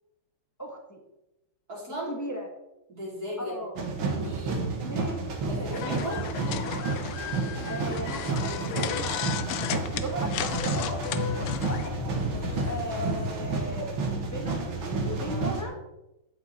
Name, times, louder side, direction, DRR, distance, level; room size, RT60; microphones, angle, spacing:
voice 1, 0.6-1.0 2.1-2.5 3.4-3.7 4.8-5.2 5.5-6.8 7.7-11.0 11.6-11.9 12.6-15.8, equal, 10° left, 1 dB, 1.0 m, -37 dB
voice 2, 1.7-2.2 2.9-3.6 4.0-4.7 5.5-6.2 12.0-12.5, equal, 40° right, -6 dB, 4.2 m, -37 dB
sound 1, 3.8-15.6, right 3 dB, 65° right, 2.2 m, -31 dB
sound 2, 5.7-11.9, left 10 dB, 90° left, 1.6 m, -34 dB
sound 3, 10.5-15.5, left 6 dB, 60° left, 1.6 m, -37 dB
15.0 x 5.3 x 4.2 m, 0.94 s
omnidirectional pair, 2.4 m